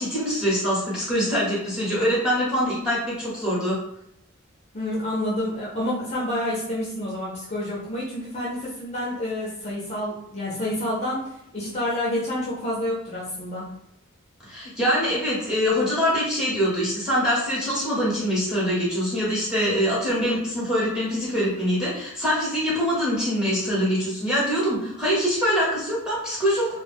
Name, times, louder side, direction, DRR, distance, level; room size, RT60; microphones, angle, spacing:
voice 1, 0.0-3.8 14.5-26.8, equal, 5° right, -8 dB, 1.0 m, -24 dB
voice 2, 4.7-13.7, left 1 dB, 30° left, -6 dB, 0.7 m, -28 dB
2.3 x 2.2 x 3.4 m, 0.78 s
head